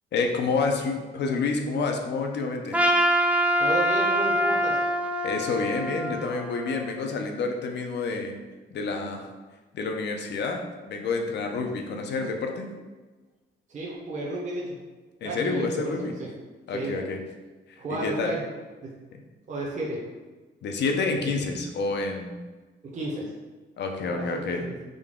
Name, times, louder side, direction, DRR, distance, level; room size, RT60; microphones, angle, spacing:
voice 1, 0.1-2.9 5.2-8.3 8.7-9.3 9.7-12.7 15.2-16.1 16.7-17.2 17.7-18.3 19.1-19.2 20.6-22.4 23.8-24.7, left 4 dB, 60° left, 3 dB, 0.6 m, -28 dB
Trumpet, 2.7-7.0, equal, 5° right, 0.3 m, -25 dB
voice 2, 3.6-4.8 13.7-14.8 15.2-16.3 16.7-17.0 17.8-18.4 18.8-18.9 19.5-20.0 22.8-23.3 24.1-24.8, right 2 dB, 35° right, -3 dB, 0.7 m, -32 dB
3.8 x 2.2 x 3.6 m, 1.3 s
cardioid pair, 90°, 20 cm